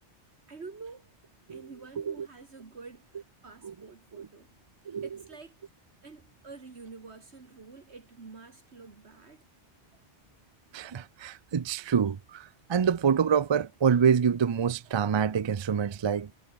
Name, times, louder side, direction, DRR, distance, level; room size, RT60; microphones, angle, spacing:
voice 1, 0.5-1.1 1.5-4.5 5.0-5.6 6.0-9.4, right 4 dB, 65° right, 2.3 m, -48 dB
voice 2, 10.7-16.3, right 7 dB, 45° right, 0.3 m, -26 dB
omnidirectional pair, 1.2 m